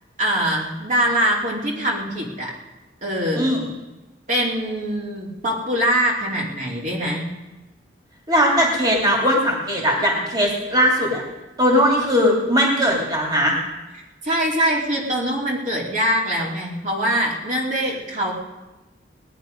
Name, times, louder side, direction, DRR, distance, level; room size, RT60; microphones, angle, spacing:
voice 1, 0.2-2.5 3.0-3.5 4.3-7.3 14.2-18.3, equal, 45° right, -2 dB, 2.7 m, -23 dB
voice 2, 3.4-3.7 8.3-11.2 11.6-13.6, equal, 20° right, -2 dB, 2.7 m, -19 dB
20.0 x 10.0 x 5.2 m, 1.1 s
head